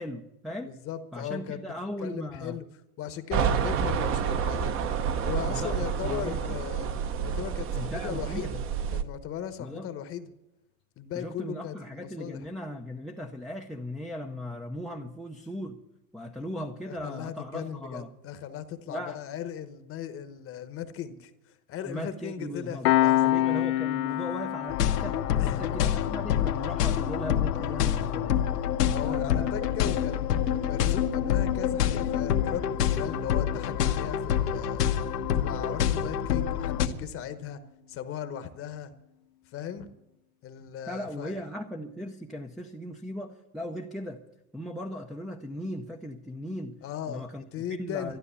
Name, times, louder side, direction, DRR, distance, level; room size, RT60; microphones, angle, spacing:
voice 1, 0.0-0.7 1.1-2.6 5.4-6.5 7.7-8.6 9.6-9.9 11.1-15.8 16.1-18.1 18.9-19.2 21.9-22.9 23.2-25.2 25.5-28.4 29.0-29.5 40.9-44.2 44.5-46.8 47.1-47.4 47.7-48.2, equal, ahead, 4 dB, 0.6 m, -38 dB
voice 2, 0.7-1.6 2.0-2.7 3.0-4.7 5.2-6.9 7.2-8.6 8.9-10.3 11.0-12.4 16.9-23.4 25.4-25.7 28.9-30.3 30.7-34.9 35.3-37.6 37.9-38.9 39.5-39.9 40.4-41.4 46.8-48.2, left 9 dB, 30° left, 11 dB, 1.0 m, -38 dB
sound 1, 3.3-9.0, right 7 dB, 30° right, 0.9 m, -29 dB
Piano, 22.8-33.9, left 15 dB, 70° left, 0.5 m, -31 dB
sound 2, 24.7-36.9, left 9 dB, 90° left, 1.3 m, -27 dB
13.0 x 12.0 x 8.3 m, 0.89 s
hypercardioid pair, 125°, 45 cm